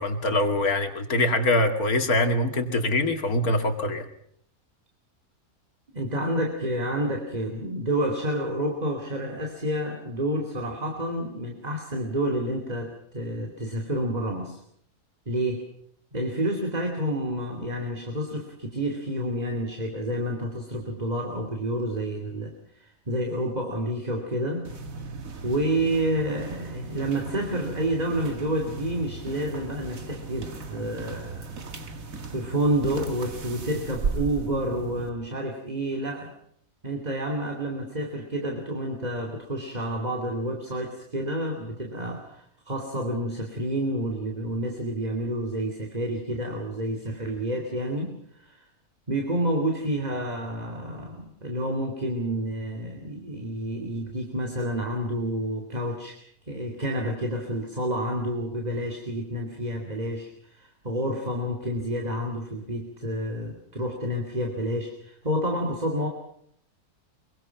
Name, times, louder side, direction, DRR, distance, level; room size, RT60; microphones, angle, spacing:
voice 1, 0.0-4.1, left 1 dB, 80° left, 6 dB, 2.8 m, -24 dB
voice 2, 5.9-14.6 15.3-15.6 16.1-24.7 25.4-31.6 32.3-36.3 36.8-48.6 49.1-56.2 56.5-66.1, right 1 dB, 25° right, 2 dB, 2.9 m, -29 dB
sound 1, 24.6-35.1, right 4 dB, 65° right, 2.3 m, -36 dB
24.5 x 23.5 x 5.9 m, 0.67 s
omnidirectional pair, 1.5 m